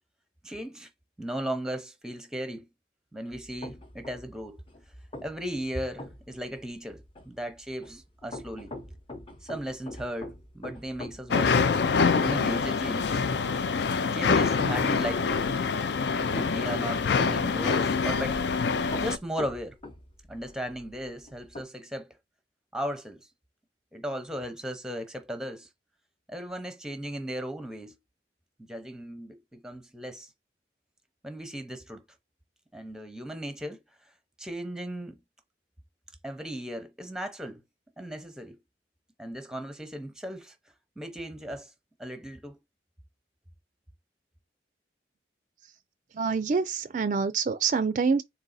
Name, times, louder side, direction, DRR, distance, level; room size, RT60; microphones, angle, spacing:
voice 1, 0.4-0.9 1.2-2.7 3.1-4.6 5.2-8.7 9.4-11.7 12.1-13.3 14.1-15.6 16.2-18.5 19.0-19.8 20.3-22.1 22.7-23.3 23.9-25.7 26.3-28.0 28.7-30.3 31.2-32.0 32.7-33.8 34.4-35.2 36.2-37.6 38.0-38.6 39.2-40.5 41.0-41.7 42.0-42.6, equal, 5° right, 0.6 m, -36 dB
sound 1, 3.3-21.6, left 1 dB, 30° left, 0.8 m, -44 dB
sound 2, 11.3-19.2, left 5 dB, 70° left, 0.4 m, -25 dB
voice 2, 46.1-48.2, right 5 dB, 45° right, 0.3 m, -26 dB
4.0 x 2.8 x 4.0 m
head